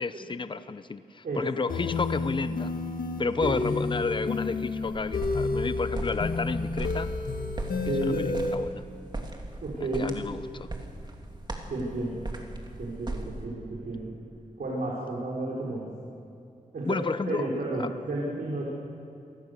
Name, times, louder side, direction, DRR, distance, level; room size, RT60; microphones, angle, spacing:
voice 1, 0.0-2.7 3.2-7.1 7.8-8.8 10.0-10.7 16.8-17.5 17.8-17.9, left 4 dB, 35° left, 13 dB, 0.8 m, -31 dB
voice 2, 1.2-1.8 3.4-3.6 7.8-8.2 9.6-10.1 11.7-12.2 12.8-14.1 14.6-15.9 16.7-18.6, right 2 dB, 80° right, -5 dB, 5.0 m, -32 dB
sound 1, 1.7-8.5, left 3 dB, 75° left, 1.8 m, -30 dB
sound 2, 4.8-13.5, right 2 dB, 30° right, 2.7 m, -39 dB
27.5 x 19.0 x 6.8 m, 2.4 s
wide cardioid pair, 100°, 15 cm